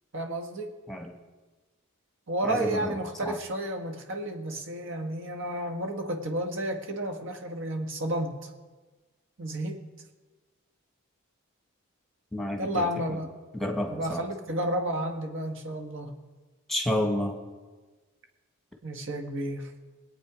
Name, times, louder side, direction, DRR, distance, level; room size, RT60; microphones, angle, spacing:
voice 1, 0.1-0.7 2.3-8.5 9.4-9.8 12.6-13.3 13.9-16.1 18.8-19.7, right 1 dB, 60° right, 4 dB, 1.6 m, -31 dB
voice 2, 2.4-2.9 3.2-3.4 12.3-13.2 13.5-14.2 16.7-17.4, left 1 dB, ahead, 2 dB, 1.7 m, -30 dB
22.0 x 8.6 x 5.0 m, 1.3 s
head